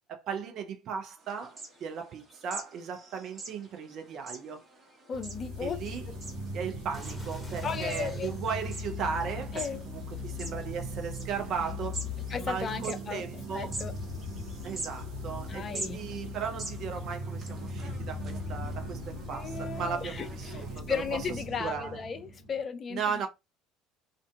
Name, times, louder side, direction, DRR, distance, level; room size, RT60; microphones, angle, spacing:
voice 1, 0.1-4.6 5.6-6.1 6.5-12.0 12.4-13.8 14.6-21.3 21.6-22.0 22.9-23.3, right 6 dB, 50° right, 0.5 m, -36 dB
sound 1, 1.2-20.8, right 2 dB, 30° right, 1.0 m, -46 dB
voice 2, 5.1-5.8 6.1-6.2 7.6-8.4 9.5-9.8 12.3-13.2 13.5-13.9 15.5-16.1 19.3-23.0, left 6 dB, 35° left, 0.4 m, -35 dB
sound 2, 5.1-22.6, left 1 dB, 75° right, 0.9 m, -39 dB
sound 3, 6.9-8.6 9.3-10.7 11.5-11.7, equal, 10° left, 0.9 m, -50 dB
2.5 x 2.2 x 2.3 m
figure-of-eight pair, 60°, 0 cm